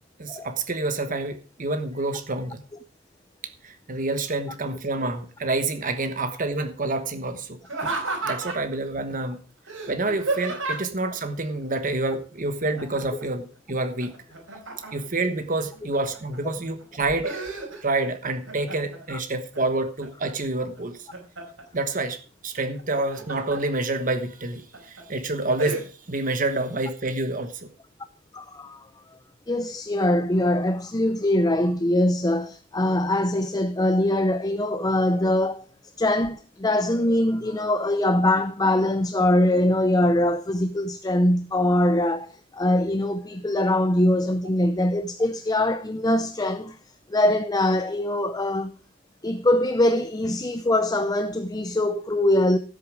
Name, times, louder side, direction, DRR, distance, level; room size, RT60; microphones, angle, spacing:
voice 1, 0.2-2.6 3.4-7.9 8.2-9.4 9.9-14.1 14.9-17.4 17.8-21.1 21.7-27.7, right 2 dB, 40° right, 1.2 m, -28 dB
Laughter, 7.6-8.7 9.7-11.0 12.8-13.2 13.6-15.2 15.7-16.4 16.8-18.1 18.4-19.0 19.5-20.3 20.8-21.6 22.8-23.6 24.1-24.2 24.7-25.0 25.6-25.8, right 3 dB, 75° right, 5.4 m, -32 dB
voice 2, 28.3-28.9 29.5-35.6 36.0-46.8 47.1-48.7 49.2-52.6, left 1 dB, 20° left, 0.6 m, -22 dB
14.0 x 8.4 x 4.8 m
head